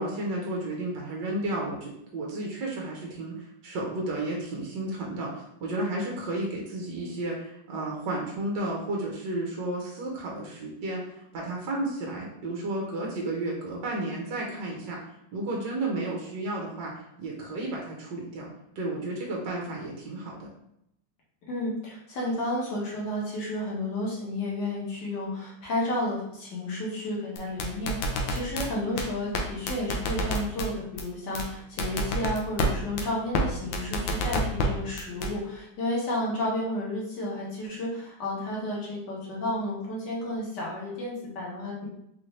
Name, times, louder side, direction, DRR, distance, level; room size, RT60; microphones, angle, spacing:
voice 1, 0.0-15.0 15.3-16.9 17.2-20.5, right 2 dB, 75° right, -2 dB, 1.4 m, -32 dB
voice 2, 21.5-41.9, left 1 dB, 65° left, -4 dB, 1.8 m, -32 dB
sound 1, 27.4-28.7 29.0-29.1 29.3-29.4 29.7-30.7 31.0-31.1 31.4-31.5 31.8-32.7 33.0-33.1 33.3-33.4 33.7-34.7 35.0-35.3, left 1 dB, 90° left, 1.4 m, -27 dB
4.2 x 2.5 x 3.2 m, 0.77 s
omnidirectional pair, 2.0 m